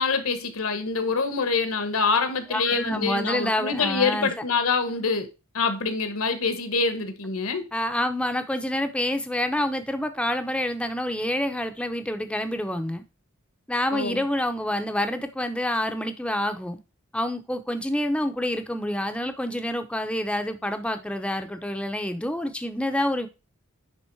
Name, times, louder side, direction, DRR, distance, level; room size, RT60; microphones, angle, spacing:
voice 1, 0.0-5.3 5.5-7.7 13.9-14.2, left 4 dB, 65° left, 1.3 m, -25 dB
voice 2, 2.5-4.3 7.7-13.0 13.7-16.8 17.1-23.3, left 1 dB, 5° left, 0.8 m, -27 dB
10.0 x 3.6 x 4.6 m
head